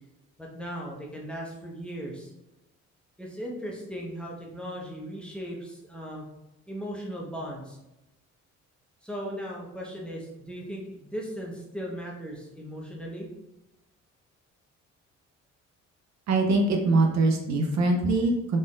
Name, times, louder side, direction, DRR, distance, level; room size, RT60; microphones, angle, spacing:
voice 1, 0.4-2.3 3.2-6.3 6.7-7.8 9.0-13.3, equal, 5° left, -3 dB, 1.1 m, -37 dB
voice 2, 16.3-18.6, right 2 dB, 65° right, 2 dB, 0.7 m, -23 dB
4.1 x 3.8 x 2.5 m, 0.91 s
cardioid pair, 90°, 30 cm